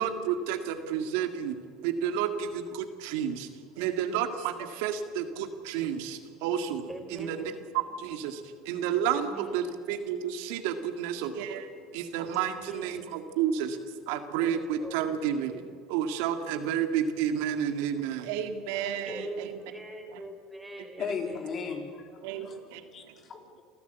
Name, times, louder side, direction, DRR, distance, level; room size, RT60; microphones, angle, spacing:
voice 1, 0.0-1.6 1.8-3.5 3.8-13.8 14.1-19.6 20.1-20.2 22.2-22.8, right 8 dB, 75° right, 2.0 m, -31 dB
voice 2, 6.9-7.5 9.0-9.7 12.2-13.1 14.4-15.0 19.1-21.4, right 1 dB, 5° right, 4.7 m, -42 dB
voice 3, 21.0-22.6 22.9-23.6, left 5 dB, 40° left, 3.7 m, -36 dB
27.5 x 14.5 x 8.3 m
supercardioid pair, 100°, 0 cm